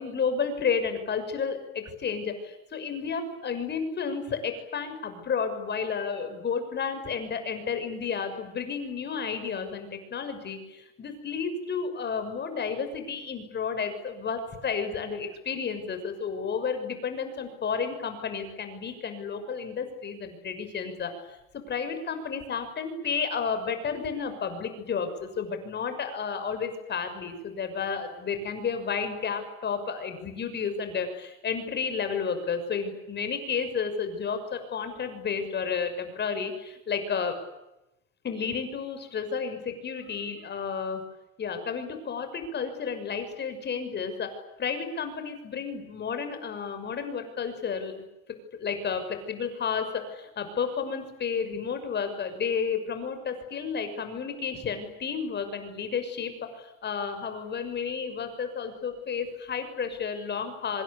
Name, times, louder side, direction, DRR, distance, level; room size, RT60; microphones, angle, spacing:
voice 1, 0.0-21.1 21.5-37.3 38.2-41.0 41.4-44.3 44.6-47.9 48.3-60.8, left 6 dB, 25° left, 8 dB, 6.4 m, -32 dB
26.0 x 26.0 x 8.6 m, 0.90 s
cardioid pair, 155°, 40 cm